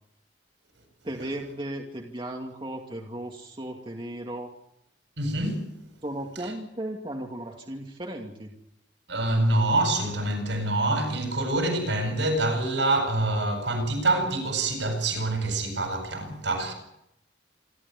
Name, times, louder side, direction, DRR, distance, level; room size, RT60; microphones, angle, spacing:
voice 1, 1.0-4.5 6.0-8.5, right 1 dB, 30° right, 2.4 m, -35 dB
voice 2, 5.2-5.7 6.4-6.5 9.1-16.7, right 2 dB, 80° right, 8.0 m, -26 dB
27.5 x 13.5 x 8.4 m
head